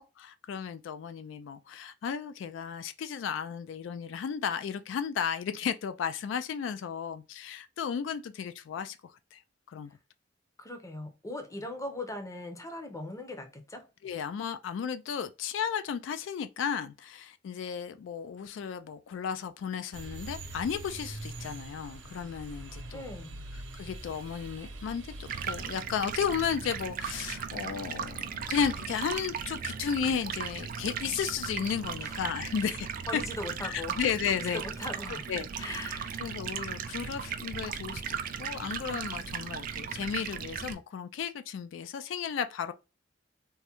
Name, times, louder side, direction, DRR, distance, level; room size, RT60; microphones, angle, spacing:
voice 1, 0.0-9.0 9.3-9.4 9.7-9.9 14.0-23.0 23.7-25.1 25.4-32.9 33.1-33.2 33.6-34.6 35.3-35.9 36.2-42.7, left 7 dB, 80° left, 0.3 m, -34 dB
voice 2, 10.6-13.9 22.9-23.4 32.0-32.7 33.1-34.0 34.3-35.3 35.6-36.3, left 1 dB, 15° left, 0.6 m, -40 dB
sound 1, 19.9-25.9, right 2 dB, 90° right, 0.6 m, -43 dB
Stream, 25.3-40.7, right 7 dB, 45° right, 0.3 m, -37 dB
3.5 x 2.1 x 2.8 m
head